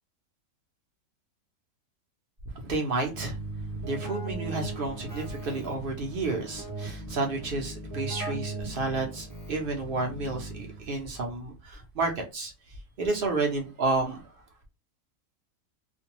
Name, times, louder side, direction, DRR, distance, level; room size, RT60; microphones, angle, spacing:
voice 1, 2.5-3.4 3.8-12.5 13.0-14.2, right 3 dB, 55° right, 0.6 m, -31 dB
Keyboard (musical), 3.1-11.0, right 2 dB, 10° right, 1.1 m, -38 dB
2.5 x 2.2 x 2.8 m
omnidirectional pair, 1.6 m